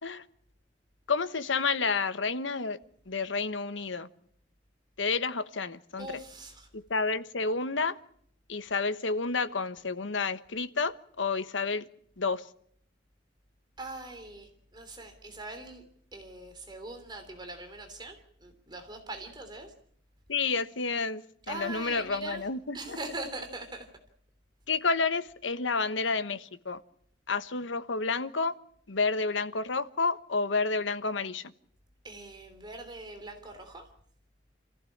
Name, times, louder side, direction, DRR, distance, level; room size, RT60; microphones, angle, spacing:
voice 1, 1.1-2.8 3.1-4.1 5.0-6.2 6.7-8.0 8.5-11.8 12.2-12.4 20.3-23.0 24.7-26.8 27.3-28.5 28.9-31.4, left 4 dB, 85° left, 1.2 m, -30 dB
voice 2, 6.0-6.7 13.8-15.8 16.1-19.7 21.5-22.5 22.7-23.9 32.0-33.9, right 2 dB, 25° right, 3.2 m, -42 dB
28.5 x 15.5 x 8.7 m
head